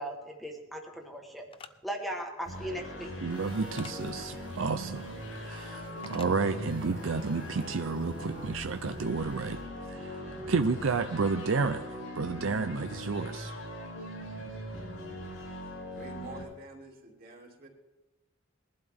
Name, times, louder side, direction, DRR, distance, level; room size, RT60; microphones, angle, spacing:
voice 1, 0.0-1.4 1.8-3.1, right 1 dB, ahead, 1 dB, 1.3 m, -38 dB
sound 1, 1.5-1.7 3.8-4.0 6.0-6.3, left 5 dB, 25° left, 0.5 m, -46 dB
sound 2, 2.4-16.4, equal, 85° left, 6.1 m, -41 dB
voice 2, 3.2-5.1 5.4-9.6 9.9-10.2 10.5-13.5, right 4 dB, 70° right, 8 dB, 0.6 m, -31 dB
sound 3, 3.3-9.8, right 2 dB, 20° right, 1.6 m, -54 dB
voice 3, 15.9-17.7, right 3 dB, 45° right, -1 dB, 2.6 m, -47 dB
20.5 x 12.0 x 3.5 m, 1.1 s
head